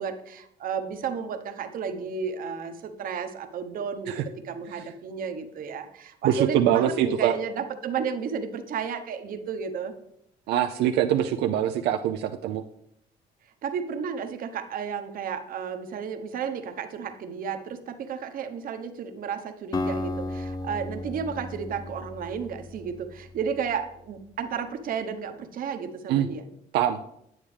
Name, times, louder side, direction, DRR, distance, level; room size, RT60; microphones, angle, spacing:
voice 1, 0.0-9.9 13.6-26.5, right 6 dB, 55° right, 8 dB, 0.9 m, -33 dB
voice 2, 6.2-7.3 10.5-12.6 26.1-26.3 26.7-27.0, right 10 dB, 85° right, 6 dB, 0.5 m, -23 dB
Acoustic guitar, 19.7-23.8, left 2 dB, 20° left, 0.6 m, -34 dB
8.9 x 8.6 x 3.3 m, 0.76 s
cardioid pair, 110°, 17 cm